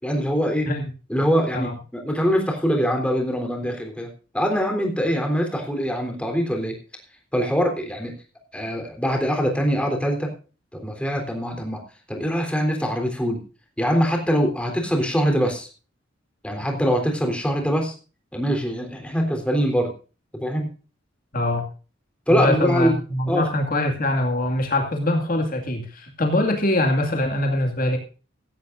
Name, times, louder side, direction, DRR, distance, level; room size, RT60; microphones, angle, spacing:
voice 1, 0.0-0.7 1.1-4.1 4.3-6.8 7.3-8.1 8.5-10.3 10.7-11.8 12.1-13.4 13.8-15.7 16.4-17.9 18.3-19.9 20.3-20.7 22.3-22.9 23.3-23.4, equal, 5° left, 2 dB, 3.6 m, -23 dB
voice 2, 21.3-21.6 22.3-28.0, left 1 dB, 45° left, 3 dB, 2.2 m, -23 dB
16.0 x 15.5 x 2.6 m, 0.36 s
head